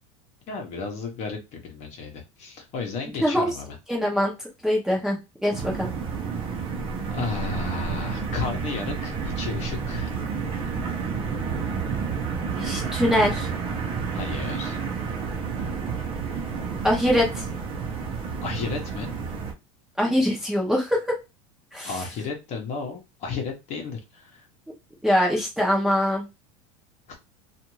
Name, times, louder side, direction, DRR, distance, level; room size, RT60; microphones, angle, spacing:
voice 1, 0.5-3.8 7.1-10.1 14.1-14.8 18.4-19.1 21.8-24.5 27.1-27.2, left 4 dB, 45° left, 2 dB, 0.9 m, -33 dB
voice 2, 3.9-5.9 12.5-13.5 16.8-17.4 20.0-21.2 21.7-21.9 25.0-26.2, equal, 5° right, -2 dB, 0.8 m, -23 dB
sound 1, 5.5-19.5, right 5 dB, 35° right, 0.8 m, -30 dB
2.5 x 2.5 x 3.0 m, 0.25 s
supercardioid pair, 140°, 17 cm